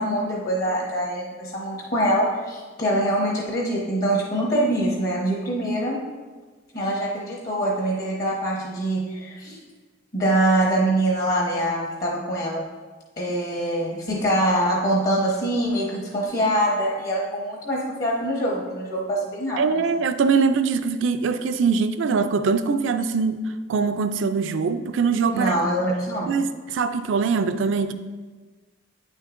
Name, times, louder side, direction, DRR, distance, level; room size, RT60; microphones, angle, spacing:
voice 1, 0.0-6.0 6.7-9.6 10.1-12.6 13.2-19.6 25.3-26.3, right 1 dB, 50° left, 1.0 m, -24 dB
voice 2, 19.6-25.6 26.3-27.9, right 5 dB, 75° right, 0.4 m, -22 dB
9.0 x 6.4 x 2.5 m
head